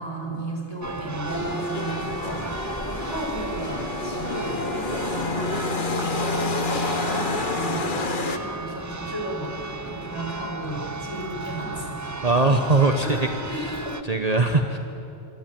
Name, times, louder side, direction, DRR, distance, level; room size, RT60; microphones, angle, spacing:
voice 1, 0.0-2.5 2.9-12.0 12.3-12.4 13.0-14.0, equal, 25° left, 0 dB, 5.7 m, -34 dB
Church bell, 0.8-14.0, right 3 dB, 20° right, 0.7 m, -35 dB
sound 1, 1.3-8.4, left 3 dB, 50° left, 1.5 m, -29 dB
voice 2, 12.2-13.1 14.1-14.8, right 3 dB, 35° right, 5 dB, 1.4 m, -20 dB
25.5 x 24.5 x 9.4 m, 2.8 s
omnidirectional pair, 1.1 m